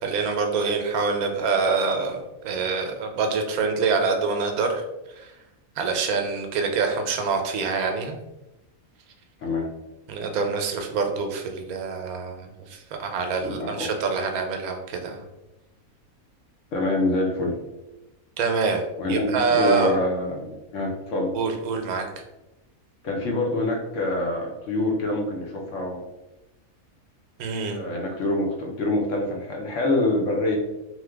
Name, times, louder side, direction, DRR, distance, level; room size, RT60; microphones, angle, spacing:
voice 1, 0.0-4.8 5.1-5.3 5.8-8.2 10.1-15.2 18.4-20.0 21.3-22.0 27.4-27.8, right 4 dB, 85° right, 4 dB, 1.0 m, -25 dB
voice 2, 13.4-13.9 16.7-17.6 19.0-21.3 23.0-26.0 27.7-30.6, left 2 dB, 65° left, 0 dB, 0.9 m, -26 dB
3.0 x 2.1 x 3.3 m, 0.98 s
omnidirectional pair, 1.5 m